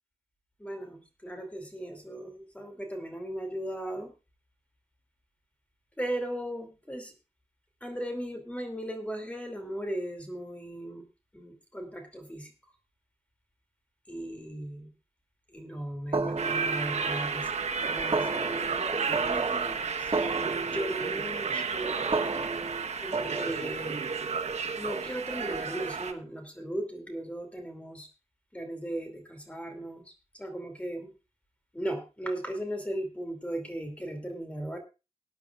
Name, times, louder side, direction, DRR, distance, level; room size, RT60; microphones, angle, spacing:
voice 1, 0.6-4.1 6.0-7.1 7.8-11.1 11.3-12.5 14.1-14.9 15.5-17.5 17.8-20.3 20.6-22.1 23.0-24.1 24.8-28.1 28.5-31.1 31.7-34.8, right 1 dB, 10° left, 5 dB, 2.8 m, -37 dB
sound 1, 16.1-23.9, right 3 dB, 50° right, 2.0 m, -33 dB
sound 2, 16.4-26.1, right 5 dB, 80° right, 1.2 m, -32 dB
20.5 x 10.5 x 2.4 m, 0.29 s
wide cardioid pair, 110°, 11 cm